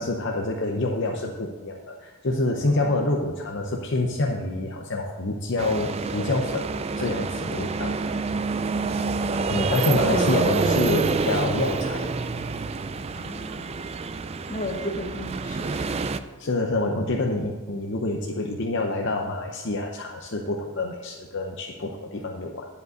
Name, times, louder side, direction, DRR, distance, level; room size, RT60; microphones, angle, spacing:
voice 1, 0.0-6.6 7.0-8.2 9.5-12.1 16.4-22.7, left 2 dB, 55° left, 1 dB, 0.7 m, -27 dB
voice 2, 2.7-3.1 8.7-9.1 9.9-10.3 13.1-13.7 14.5-16.0, left 1 dB, 40° left, 2 dB, 1.3 m, -35 dB
sound 1, 5.6-16.2, right 4 dB, 30° right, 0.4 m, -27 dB
10.5 x 5.4 x 7.8 m, 1.4 s
head